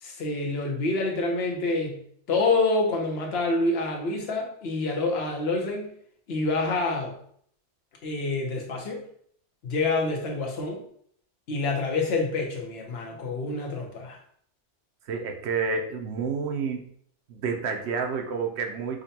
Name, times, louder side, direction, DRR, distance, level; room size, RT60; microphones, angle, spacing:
voice 1, 0.0-2.0 2.3-5.9 6.3-7.1 8.0-9.0 9.6-10.8 11.5-14.2, left 3 dB, 65° left, 1 dB, 0.9 m, -27 dB
voice 2, 15.0-16.9 17.3-19.0, right 5 dB, 75° right, 3 dB, 0.9 m, -29 dB
5.0 x 2.2 x 2.7 m, 0.63 s
omnidirectional pair, 1.2 m